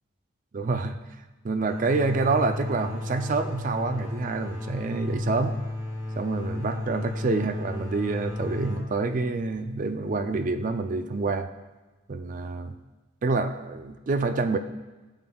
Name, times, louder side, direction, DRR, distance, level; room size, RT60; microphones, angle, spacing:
voice 1, 0.5-1.0 1.4-5.6 6.2-11.5 12.1-12.7 13.2-14.6, right 3 dB, 40° right, 8 dB, 0.4 m, -27 dB
sound 1, 1.6-11.1, left 1 dB, 15° right, 1.1 m, -34 dB
8.7 x 7.7 x 2.3 m, 1.2 s
head